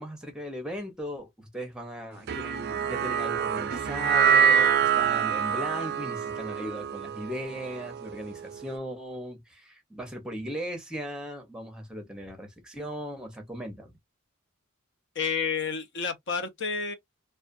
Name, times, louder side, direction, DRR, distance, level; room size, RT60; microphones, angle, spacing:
voice 1, 0.0-14.0, equal, 5° right, 0.7 m, -38 dB
sound 1, 2.3-8.7, right 7 dB, 50° right, 0.3 m, -25 dB
voice 2, 15.1-16.9, left 5 dB, 55° left, 0.6 m, -30 dB
2.3 x 2.2 x 2.4 m
head